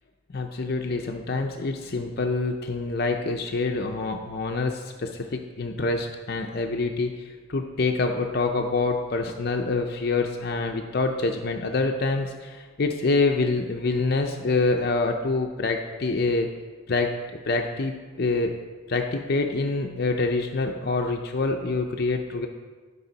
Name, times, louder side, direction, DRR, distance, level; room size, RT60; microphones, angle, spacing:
voice 1, 0.3-16.5 16.9-17.1 17.5-18.5 18.9-22.5, left 3 dB, 50° left, 3 dB, 0.6 m, -26 dB
12.5 x 5.5 x 4.0 m, 1.4 s
head